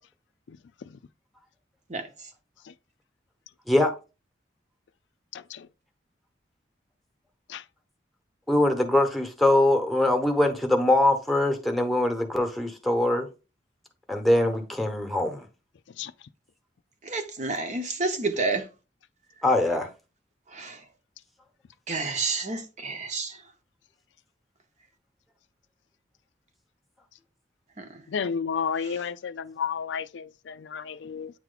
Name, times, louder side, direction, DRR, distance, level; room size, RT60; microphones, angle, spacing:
voice 1, 8.5-13.3 14.1-15.4 19.4-19.9, left 1 dB, ahead, 1.0 m, -22 dB
voice 2, 17.0-18.7 20.5-20.8 21.9-23.4 27.8-28.0 28.8-29.0, right 3 dB, 40° right, 0.9 m, -30 dB
voice 3, 28.1-31.3, left 6 dB, 85° left, 0.4 m, -31 dB
8.9 x 3.0 x 3.8 m
head